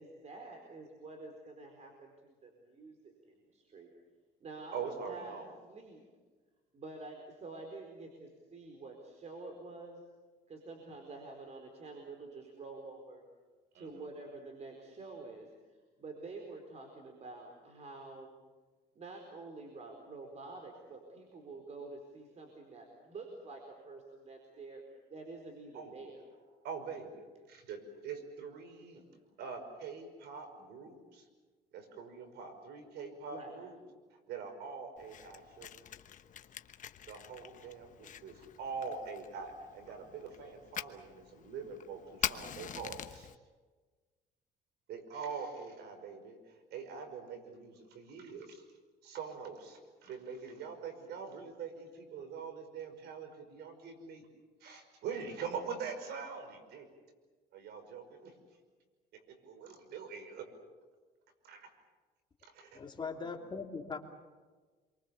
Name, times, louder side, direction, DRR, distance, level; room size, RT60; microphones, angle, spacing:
voice 1, 0.0-3.9 4.4-5.4 5.6-6.0 6.7-10.0 10.5-13.2 13.7-18.3 18.9-26.2 33.3-33.6, right 3 dB, 40° right, 3 dB, 4.5 m, -48 dB
voice 2, 4.7-5.5 13.7-14.0 25.7-26.0 26.6-29.0 29.4-31.3 31.7-33.8 34.1-35.8 37.1-43.3 44.9-48.6 49.0-54.3 54.6-56.9 57.5-58.3 59.1-60.5 61.4-61.7 62.4-62.8, right 5 dB, 75° right, 6 dB, 5.5 m, -44 dB
Fire, 35.0-43.3, left 10 dB, 50° left, 1.1 m, -44 dB
voice 3, 62.7-64.0, left 4 dB, 25° left, 3 dB, 3.0 m, -40 dB
28.0 x 23.5 x 7.1 m, 1.4 s
cardioid pair, 110°, 17 cm